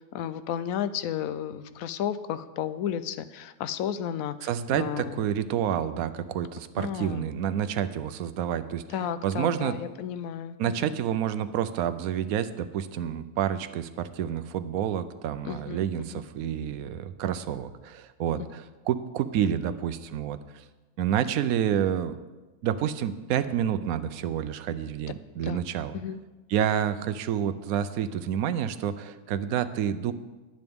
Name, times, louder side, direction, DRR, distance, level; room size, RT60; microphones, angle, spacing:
voice 1, 0.1-5.2 6.8-7.3 8.9-11.0 15.4-15.8 16.1-16.2 25.4-25.6 25.9-26.2, left 9 dB, 75° left, 13 dB, 1.0 m, -33 dB
voice 2, 4.4-9.8 10.6-20.4 21.0-22.2 22.6-26.0 26.5-30.1, right 9 dB, 75° right, 11 dB, 1.1 m, -29 dB
20.0 x 7.9 x 3.6 m, 1.2 s
omnidirectional pair, 1.6 m